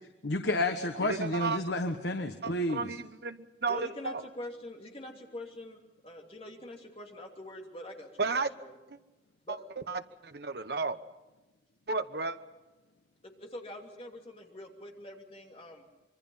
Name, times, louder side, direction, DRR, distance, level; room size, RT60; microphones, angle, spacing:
voice 1, 0.2-3.0, left 1 dB, 70° left, 6 dB, 1.2 m, -31 dB
voice 2, 1.0-1.6 2.4-4.2 8.2-8.5 9.5-11.0 11.9-12.4, right 4 dB, 60° right, 10 dB, 1.0 m, -33 dB
voice 3, 3.7-8.8 9.4-9.6 13.2-15.8, left 1 dB, 30° left, 2 dB, 2.8 m, -44 dB
26.0 x 23.0 x 5.6 m, 1.1 s
head